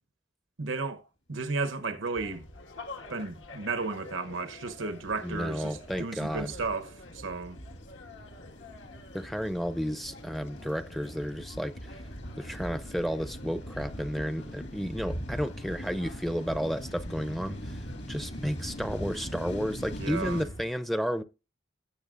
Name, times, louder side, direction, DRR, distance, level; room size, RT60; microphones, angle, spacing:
voice 1, 0.6-1.0 1.3-2.4 3.1-7.6 20.0-20.5, right 3 dB, 85° right, 0.9 m, -34 dB
sound 1, 2.2-20.7, left 1 dB, 80° left, 1.6 m, -45 dB
sound 2, 2.7-20.5, equal, 65° left, 1.9 m, -43 dB
voice 2, 5.2-6.5 9.1-11.7 12.4-17.8 18.1-21.2, equal, ahead, 0.5 m, -32 dB
17.0 x 6.8 x 2.5 m
head